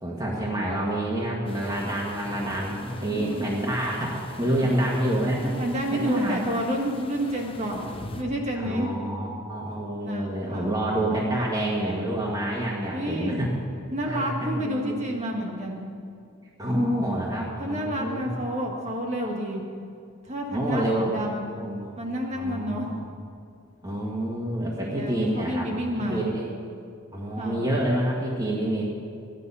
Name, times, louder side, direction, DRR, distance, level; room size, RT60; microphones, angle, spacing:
voice 1, 0.0-5.5 5.9-6.5 8.6-13.5 14.0-15.1 16.6-18.4 20.5-21.1 21.5-21.9 22.3-23.0 23.8-25.7 25.9-26.5 27.1-28.8, right 1 dB, 20° right, -5 dB, 1.5 m, -28 dB
sound 1, 1.4-8.2, left 2 dB, 25° left, 0.8 m, -42 dB
voice 2, 3.0-3.5 4.6-4.7 5.6-7.8 8.2-8.9 10.0-10.7 12.9-13.4 13.9-15.9 17.6-19.6 20.2-21.4 22.0-22.9 24.8-26.3 27.4-27.7, equal, 35° right, 0 dB, 1.8 m, -30 dB
15.0 x 10.5 x 5.6 m, 2.3 s
head